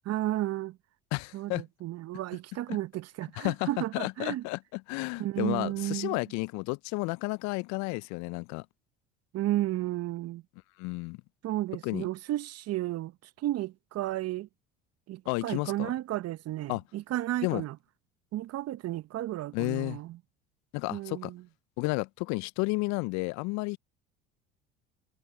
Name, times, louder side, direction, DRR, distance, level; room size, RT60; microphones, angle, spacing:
voice 1, 0.0-0.8 1.3-4.4 5.2-6.2 9.3-10.4 11.4-13.1 13.4-14.5 15.1-17.7 18.3-20.2 20.9-21.4, right 15 dB, 50° right, 1.0 m, -33 dB
voice 2, 1.1-1.6 2.7-2.8 3.4-8.7 10.8-11.2 11.8-12.1 15.3-15.9 16.7-16.8 17.4-17.6 19.5-20.0 20.7-21.3 21.8-23.8, left 27 dB, 60° left, 0.5 m, -32 dB
hypercardioid pair, 65°, 31 cm